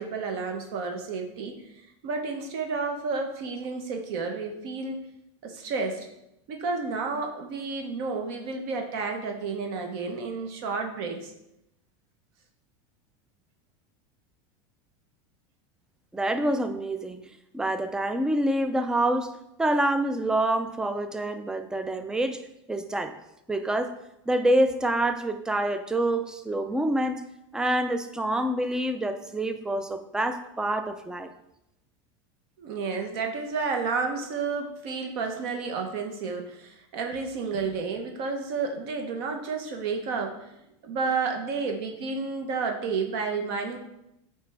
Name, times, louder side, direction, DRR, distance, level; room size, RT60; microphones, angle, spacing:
voice 1, 0.0-5.0 5.4-6.1 6.5-11.3 32.6-40.5 40.8-43.8, right 4 dB, 60° right, 3 dB, 1.0 m, -31 dB
voice 2, 16.1-17.2 17.5-22.4 22.7-23.2 23.5-23.9 24.3-27.2 27.5-31.3, right 1 dB, 5° right, 9 dB, 0.3 m, -26 dB
8.8 x 3.3 x 3.3 m, 0.84 s
supercardioid pair, 145°, 14 cm